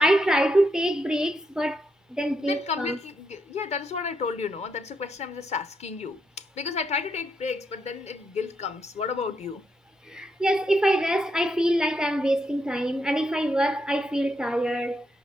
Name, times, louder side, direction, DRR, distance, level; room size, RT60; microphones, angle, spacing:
voice 1, 0.0-3.0 10.0-15.1, right 1 dB, 5° right, 0.4 m, -24 dB
voice 2, 2.3-9.6, left 6 dB, 40° left, 0.8 m, -32 dB
5.6 x 5.1 x 3.6 m
cardioid pair, 110°, 17 cm